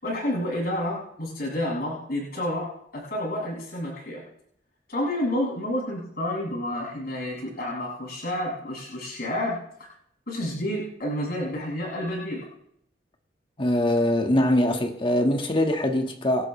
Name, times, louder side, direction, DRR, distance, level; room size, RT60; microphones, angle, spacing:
voice 1, 0.0-2.7 2.9-4.2 4.9-9.6 10.3-12.4, left 1 dB, 55° left, 7.0 m, -29 dB
voice 2, 13.6-16.5, left 1 dB, 30° left, 1.7 m, -22 dB
26.5 x 12.0 x 3.3 m
head